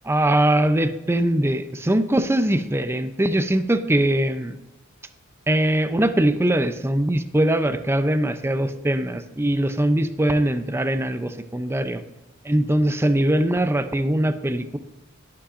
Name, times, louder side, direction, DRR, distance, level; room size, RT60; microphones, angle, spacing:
voice 1, 0.0-4.6 5.5-12.0 12.4-14.8, right 1 dB, 15° right, 10 dB, 0.5 m, -21 dB
11.5 x 11.5 x 2.5 m, 0.99 s
head